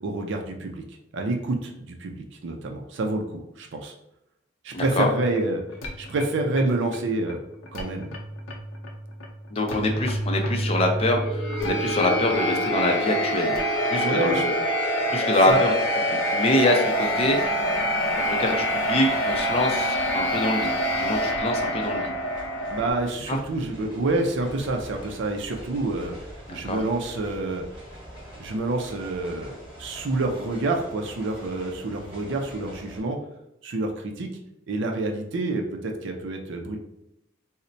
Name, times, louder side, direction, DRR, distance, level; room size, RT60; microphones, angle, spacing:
voice 1, 0.0-0.8 1.1-3.9 4.6-5.6 6.0-7.4 7.7-8.1 14.0-14.4 15.5-15.6 22.7-26.2 26.5-27.6 28.4-33.2 33.6-34.3 34.7-36.8, right 2 dB, 65° right, 3 dB, 0.5 m, -28 dB
voice 2, 4.7-5.1 9.5-13.5 13.9-14.5 15.1-15.7 16.1-17.4 18.1-20.7 21.0-22.1 23.3-23.4 26.5-26.8, left 1 dB, 30° left, 2 dB, 0.5 m, -25 dB
sound 1, 4.8-22.9, equal, 75° left, 0.6 m, -27 dB
sound 2, 14.6-33.0, equal, 5° right, 1.5 m, -45 dB
4.0 x 2.1 x 2.6 m, 0.85 s
head